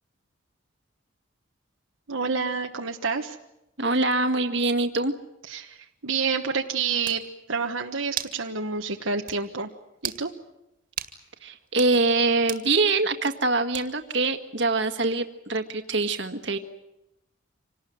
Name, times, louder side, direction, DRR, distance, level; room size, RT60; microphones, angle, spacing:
voice 1, 2.1-3.4 5.5-5.8 6.0-7.2 7.5-9.7 10.0-10.3, right 5 dB, 75° right, 3 dB, 1.3 m, -28 dB
voice 2, 3.8-5.1 11.4-16.6, right 3 dB, 60° right, 7 dB, 1.7 m, -24 dB
sound 1, 6.6-6.7 7.0-7.2 8.2-8.4 8.8-8.9 9.3-9.4 10.0-10.2 11.0-11.2 11.7-11.9 12.5-12.7 13.7-14.1, right 9 dB, 40° right, 2.1 m, -34 dB
26.5 x 19.0 x 9.3 m, 0.92 s
head